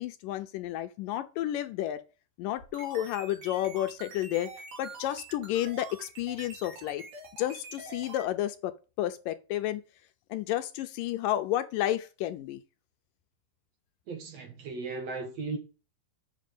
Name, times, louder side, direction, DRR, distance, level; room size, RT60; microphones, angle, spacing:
voice 1, 0.0-2.0 2.4-4.5 4.8-7.1 7.4-8.7 9.0-9.8 10.3-12.6, left 13 dB, 75° left, 2.2 m, -31 dB
sound 1, 2.5-8.3, right 4 dB, 90° right, 4.7 m, -46 dB
voice 2, 14.1-15.6, right 4 dB, 55° right, 2.1 m, -36 dB
8.2 x 6.4 x 6.8 m
omnidirectional pair, 4.1 m